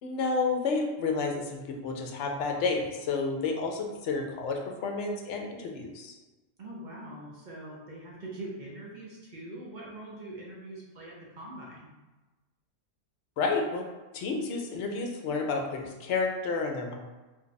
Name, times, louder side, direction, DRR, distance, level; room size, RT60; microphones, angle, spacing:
voice 1, 0.0-6.1 13.4-13.8 14.1-16.9, left 4 dB, 70° left, 2 dB, 0.8 m, -30 dB
voice 2, 6.6-11.9, right 1 dB, 50° right, -4 dB, 0.6 m, -43 dB
2.6 x 2.3 x 3.9 m, 1.2 s
omnidirectional pair, 1.3 m